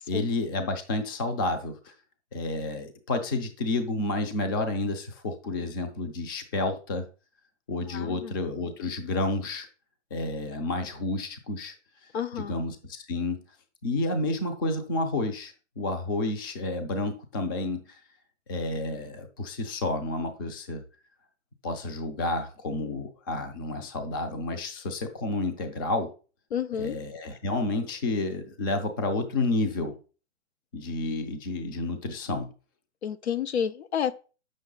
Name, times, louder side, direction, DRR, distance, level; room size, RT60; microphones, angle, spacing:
voice 1, 0.1-1.9 2.3-7.0 7.7-9.7 10.1-11.7 12.4-13.4 13.8-18.0 18.5-20.8 21.6-26.1 26.8-30.0 30.7-32.5, left 2 dB, 20° left, 0.5 m, -30 dB
voice 2, 7.9-8.3 12.1-12.5 26.5-27.0 33.0-34.1, left 8 dB, 60° left, 0.7 m, -30 dB
8.0 x 6.3 x 3.9 m
hypercardioid pair, 165°, 37 cm